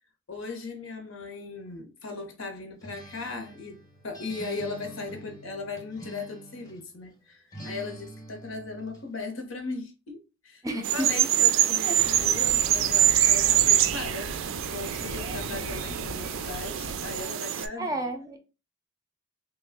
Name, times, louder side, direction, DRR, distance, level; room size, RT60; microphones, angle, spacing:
voice 1, 0.3-14.3 14.7-18.0, left 3 dB, 85° left, 0.9 m, -38 dB
Acoustic guitar, 2.8-6.9 7.5-9.1, right 1 dB, 15° left, 0.7 m, -45 dB
voice 2, 10.6-11.1 11.8-12.3 15.2-15.6 17.2-18.4, right 1 dB, 15° right, 0.5 m, -34 dB
sound 1, 10.8-17.7, right 11 dB, 75° right, 0.3 m, -24 dB
Fire, 12.0-17.2, left 3 dB, 50° left, 0.3 m, -41 dB
3.0 x 2.2 x 3.5 m
head